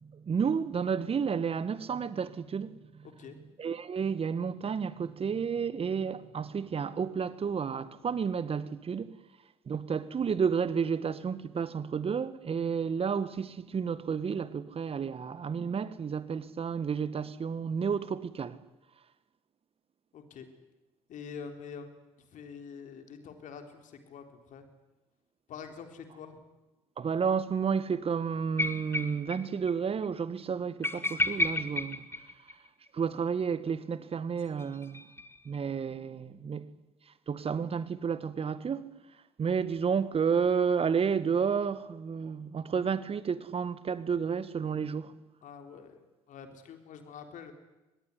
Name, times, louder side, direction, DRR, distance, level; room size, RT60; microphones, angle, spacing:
voice 1, 0.0-3.1 3.6-9.2 9.7-18.6 27.0-32.1 32.9-35.0 35.5-36.7 37.3-38.9 39.4-45.1, right 6 dB, 40° right, 1.8 m, -31 dB
voice 2, 3.0-3.4 20.1-20.5 21.1-21.9 22.2-24.7 25.5-26.4 45.4-47.5, left 6 dB, 55° left, 3.8 m, -46 dB
sound 1, 28.6-29.4 29.7-29.8 30.0-30.1 30.8-32.9 34.4-35.6, left 2 dB, 15° left, 2.7 m, -32 dB
25.0 x 20.0 x 9.9 m
hypercardioid pair, 50°, 15 cm